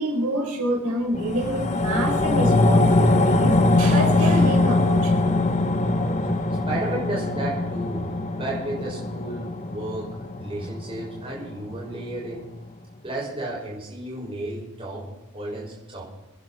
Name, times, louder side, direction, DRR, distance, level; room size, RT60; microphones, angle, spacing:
voice 1, 0.0-5.3, right 1 dB, 85° right, -1 dB, 4.7 m, -27 dB
sound 1, 1.1-11.7 12.1-12.2, left 2 dB, 35° left, 1.0 m, -22 dB
voice 2, 5.9-6.4 6.7-8.1 8.3-10.1 10.4-12.4 13.0-16.0, right 1 dB, 25° right, -4 dB, 6.0 m, -33 dB
28.0 x 10.5 x 4.4 m, 1.0 s
head